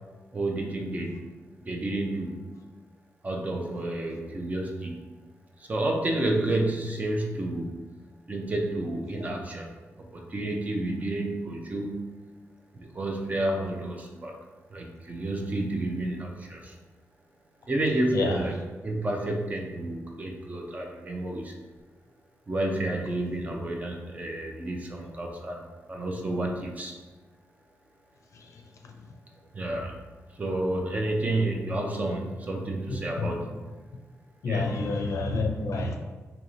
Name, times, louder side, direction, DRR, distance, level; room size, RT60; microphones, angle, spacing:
voice 1, 0.3-1.2 1.6-2.5 3.2-5.0 5.6-7.7 8.3-9.7 10.0-12.1 12.7-14.3 14.7-16.7 17.7-21.5 22.5-26.9 29.5-30.0 30.3-33.5 34.4-34.7, right 1 dB, 30° right, 1 dB, 0.5 m, -30 dB
voice 2, 32.9-33.3 34.4-36.0, left 3 dB, 75° left, 3 dB, 0.5 m, -28 dB
4.6 x 2.8 x 2.6 m, 1.3 s
wide cardioid pair, 150°, 5 cm